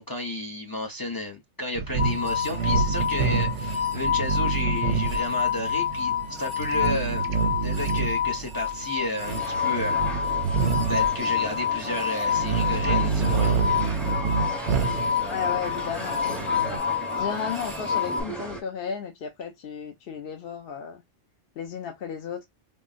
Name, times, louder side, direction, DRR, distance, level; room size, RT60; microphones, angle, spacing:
voice 1, 0.0-7.2 7.6-9.9 10.9-13.9, left 1 dB, 30° left, 0.4 m, -32 dB
sound 1, 1.8-16.8, right 5 dB, 90° right, 0.9 m, -28 dB
sound 2, 2.0-18.2, left 8 dB, 35° right, 0.6 m, -28 dB
sound 3, 9.3-18.6, right 1 dB, ahead, 0.8 m, -36 dB
voice 2, 15.3-16.8 17.2-21.0 21.6-22.4, left 7 dB, 60° left, 0.8 m, -34 dB
3.7 x 2.0 x 2.4 m
omnidirectional pair, 1.2 m